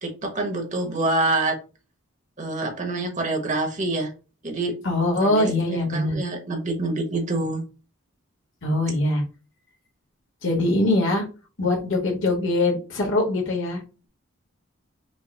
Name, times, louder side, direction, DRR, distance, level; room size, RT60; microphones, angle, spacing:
voice 1, 0.0-1.6 2.4-4.1 4.4-4.7 5.2-7.6, right 2 dB, 35° right, 3 dB, 1.3 m, -26 dB
voice 2, 4.8-6.2 8.6-9.2 10.4-11.2 11.6-13.8, left 2 dB, 65° left, 0 dB, 1.4 m, -22 dB
5.4 x 2.3 x 4.2 m, 0.33 s
head